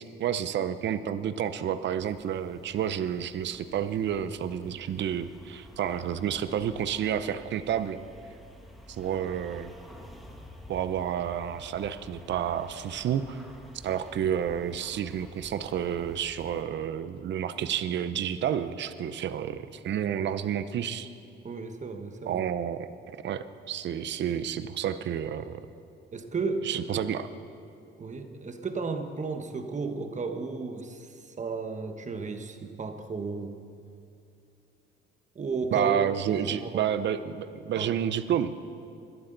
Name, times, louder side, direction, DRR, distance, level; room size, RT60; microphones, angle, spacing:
voice 1, 0.0-8.0 8.9-9.7 10.7-13.4 13.8-21.1 22.3-22.9 23.2-25.6 26.6-27.3 35.7-38.5, right 9 dB, 65° right, 12 dB, 0.7 m, -30 dB
sound 1, 2.0-16.6, left 1 dB, ahead, 1.6 m, -50 dB
voice 2, 21.4-22.4 26.1-26.7 28.0-33.6 35.3-36.0 36.3-36.9 37.8-38.0, right 4 dB, 35° right, 6 dB, 1.3 m, -33 dB
21.5 x 12.0 x 4.0 m, 2.6 s
cardioid pair, 90°, 20 cm